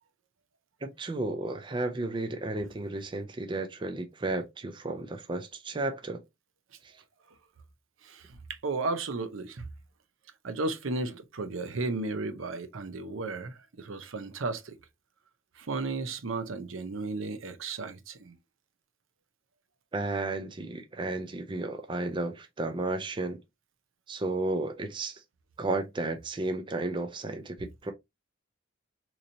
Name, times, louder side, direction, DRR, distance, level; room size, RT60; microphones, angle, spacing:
voice 1, 0.8-6.2 6.8-6.9 19.9-23.4 24.1-25.2 25.6-27.9, right 2 dB, 25° right, 0.4 m, -33 dB
voice 2, 8.6-9.6 10.4-14.7 15.6-18.3, right 3 dB, 80° right, 0.7 m, -34 dB
3.9 x 2.9 x 2.7 m
head